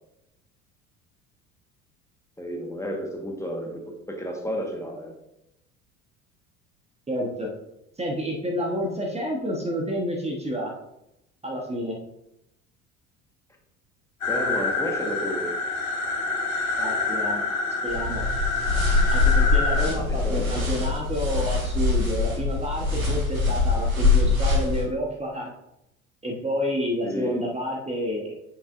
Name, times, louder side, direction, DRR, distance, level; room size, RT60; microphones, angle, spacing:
voice 1, 2.4-3.8 4.1-5.1 14.3-15.5 19.9-20.7 27.0-27.4, equal, 5° left, 1 dB, 1.5 m, -31 dB
voice 2, 7.1-7.5 8.0-10.7 11.4-12.0 16.8-17.5 17.8-18.3 19.1-25.5 26.2-28.3, equal, 15° right, -1 dB, 1.3 m, -29 dB
sound 1, 14.2-19.9, left 3 dB, 80° left, 1.5 m, -27 dB
sound 2, 17.9-24.9, left 3 dB, 85° right, 1.4 m, -23 dB
8.4 x 5.3 x 2.6 m, 0.84 s
figure-of-eight pair, 60°, 40 cm